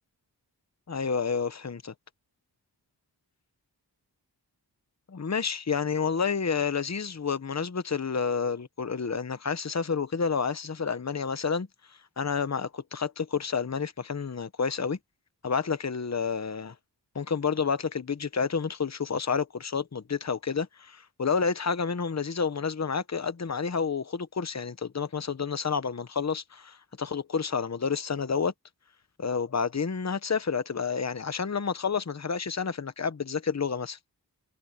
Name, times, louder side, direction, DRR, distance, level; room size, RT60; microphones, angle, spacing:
voice 1, 0.9-1.9 5.1-11.7 12.2-15.0 15.4-16.7 17.1-28.5 29.2-34.0, left 5 dB, 40° left, 1.0 m, -29 dB
wide cardioid pair, 70°, 40 cm